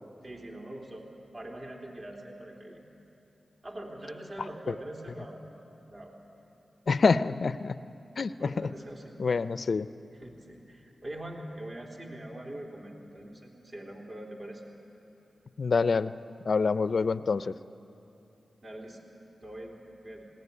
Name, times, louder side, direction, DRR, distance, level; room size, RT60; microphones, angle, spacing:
voice 1, 0.2-1.1 1.3-2.8 3.6-5.4 5.8-6.1 8.4-9.1 10.1-14.6 18.6-19.0 19.4-19.8 20.0-20.3, right 1 dB, 45° right, 0 dB, 3.5 m, -43 dB
voice 2, 6.9-7.7 8.2-8.3 9.2-9.9 15.6-16.1 16.5-17.5, left 4 dB, 70° left, 14 dB, 0.4 m, -26 dB
19.0 x 18.0 x 9.8 m, 2.9 s
cardioid pair, 50°, 0 cm